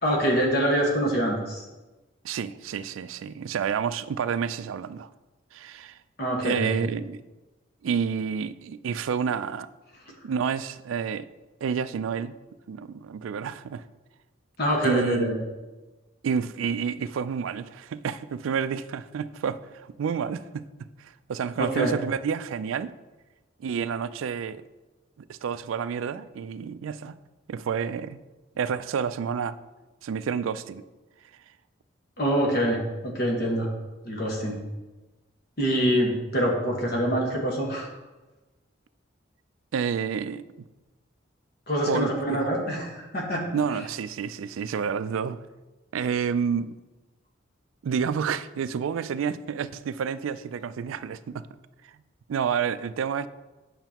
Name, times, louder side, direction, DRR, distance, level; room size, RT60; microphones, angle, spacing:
voice 1, 0.0-1.6 6.2-6.9 14.6-15.5 21.6-22.0 32.2-33.7 34.0-34.6 35.6-37.9 41.7-43.4, equal, 50° left, 1.4 m, -25 dB
voice 2, 2.2-5.1 5.5-6.0 6.4-7.2 7.8-9.7 10.2-11.3 11.6-12.4 12.7-13.8 14.8-15.4 16.2-22.9 23.6-24.6 25.2-27.2 27.5-28.2 28.6-29.6 30.0-30.8 39.7-40.7 41.9-42.5 43.5-45.4 45.9-46.7 47.8-51.5 51.8-51.9 52.3-53.3, right 7 dB, 80° right, 0.3 m, -29 dB
8.9 x 6.5 x 2.9 m
head